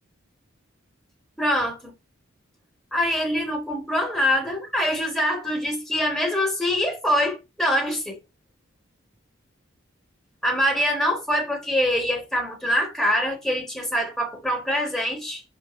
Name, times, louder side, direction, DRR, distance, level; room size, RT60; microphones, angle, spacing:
voice 1, 1.4-1.9 2.9-8.2 10.4-15.4, equal, ahead, 4.2 m, -24 dB
11.0 x 5.4 x 4.7 m
head